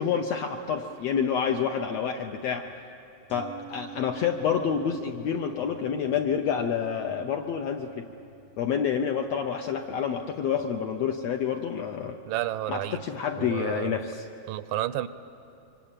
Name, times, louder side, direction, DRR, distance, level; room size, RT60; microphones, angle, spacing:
voice 1, 0.0-2.7 3.3-8.1 8.6-12.2 12.7-14.3, left 7 dB, 75° left, 5 dB, 1.6 m, -28 dB
sound 1, 3.3-13.2 13.5-13.6, right 3 dB, 10° left, 0.8 m, -49 dB
voice 2, 12.3-13.0 13.4-14.0 14.5-15.1, right 14 dB, 85° right, 14 dB, 2.4 m, -31 dB
24.5 x 24.5 x 9.0 m, 2.8 s
omnidirectional pair, 3.9 m